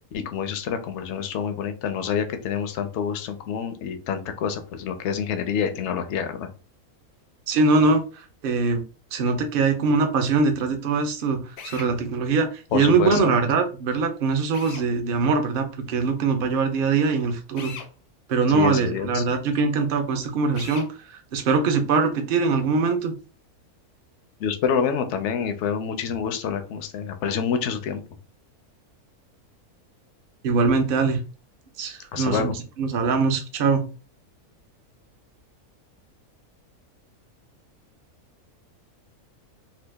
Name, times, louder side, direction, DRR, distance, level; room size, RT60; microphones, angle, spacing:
voice 1, 0.1-6.5 12.7-13.3 18.5-19.2 24.4-28.0 32.1-32.5, left 7 dB, 65° left, 8 dB, 0.7 m, -27 dB
voice 2, 7.5-8.0 8.4-8.8 9.1-11.4 11.6-17.7 18.3-20.9 21.3-23.2 30.4-31.2 31.8-32.5 32.8-33.8, right 4 dB, 55° right, 6 dB, 0.6 m, -22 dB
Drill, 11.6-11.9 14.5-14.9 17.6-17.9 20.5-20.9, left 6 dB, 85° left, 1.1 m, -39 dB
2.9 x 2.3 x 3.4 m, 0.35 s
omnidirectional pair, 1.6 m